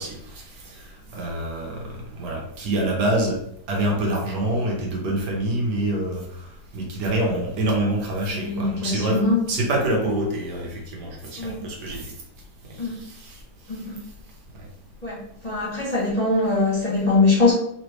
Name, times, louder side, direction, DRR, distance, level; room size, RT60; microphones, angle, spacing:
voice 1, 0.0-3.4 3.7-9.2 9.5-12.1 12.7-13.4 14.6-14.7, right 1 dB, 75° right, -1 dB, 1.5 m, -26 dB
voice 2, 8.3-9.5 11.4-11.6 12.8-12.9 13.7-13.9 15.0-15.2 15.4-17.5, left 3 dB, 25° left, -8 dB, 1.2 m, -22 dB
3.7 x 3.1 x 3.1 m, 0.73 s
omnidirectional pair, 1.9 m